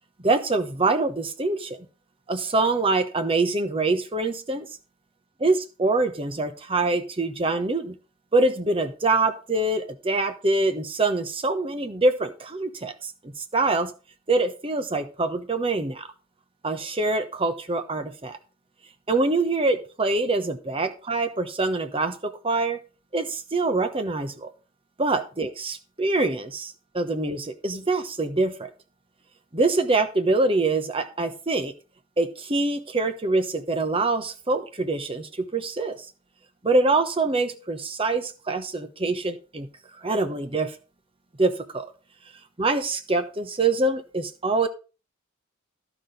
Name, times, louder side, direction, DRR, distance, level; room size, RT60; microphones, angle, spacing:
voice 1, 0.2-1.8 2.3-4.7 5.4-8.0 8.3-13.9 14.3-16.1 16.6-18.4 19.1-22.8 23.1-24.5 25.0-28.7 29.5-31.7 32.2-36.0 36.6-39.7 40.0-40.7 41.4-41.9 42.6-44.7, right 3 dB, 25° right, 8 dB, 1.0 m, -25 dB
12.0 x 6.1 x 5.1 m, 0.33 s
head